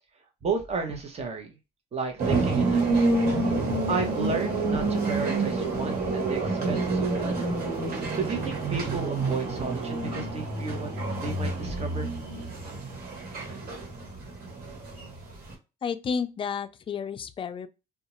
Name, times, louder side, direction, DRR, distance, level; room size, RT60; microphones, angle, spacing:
voice 1, 0.4-1.5 1.9-3.1 3.9-7.6 8.1-10.9 11.2-12.1, right 4 dB, 40° right, 0.9 m, -33 dB
sound 1, 2.2-15.5, right 3 dB, 60° right, 1.3 m, -28 dB
voice 2, 15.8-17.7, left 6 dB, 30° left, 0.3 m, -31 dB
2.5 x 2.2 x 3.0 m
cardioid pair, 110°, 17 cm